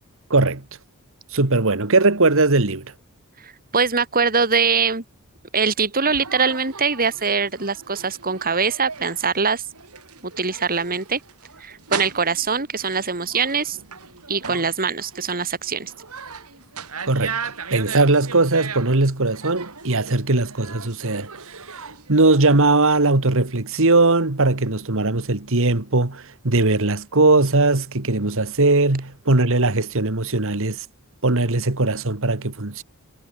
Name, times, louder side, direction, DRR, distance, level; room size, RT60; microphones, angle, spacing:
voice 1, 0.3-0.7 1.3-2.9 17.1-30.9 31.2-32.8, right 2 dB, 65° right, 1.9 m, -19 dB
voice 2, 3.4-5.0 5.5-9.6 10.2-11.2 11.6-13.8 14.3-15.9, right 5 dB, 40° right, 3.9 m, -22 dB
sound 1, 6.0-23.1, right 6 dB, 85° right, 5.7 m, -38 dB
head